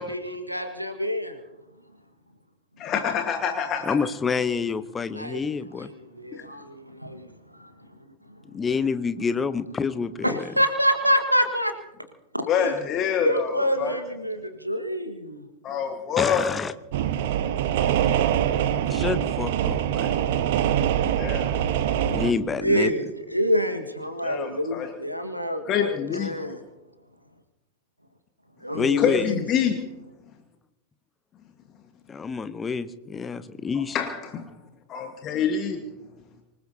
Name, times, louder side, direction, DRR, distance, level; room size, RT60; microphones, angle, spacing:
voice 1, 0.0-1.3 5.1-5.4 6.2-7.3 10.2-11.7 12.6-12.7 13.2-15.4 22.6-26.6 28.6-29.4, equal, 90° right, 7 dB, 1.6 m, -26 dB
voice 2, 2.8-4.0 6.4-6.5 12.5-14.0 15.6-16.5 21.2-21.5 24.2-24.9 25.7-26.3 29.0-29.8 33.9-34.4 34.9-35.8, left 8 dB, 30° left, 5 dB, 1.5 m, -26 dB
voice 3, 3.8-5.9 8.5-10.5 16.2-16.7 18.9-20.1 22.0-22.9 28.7-29.3 32.1-34.0, left 5 dB, 15° left, 13 dB, 0.8 m, -27 dB
sound 1, 16.9-22.3, right 10 dB, 55° right, 0.9 m, -24 dB
25.5 x 19.5 x 2.8 m, 1.0 s
figure-of-eight pair, 90°, 0 cm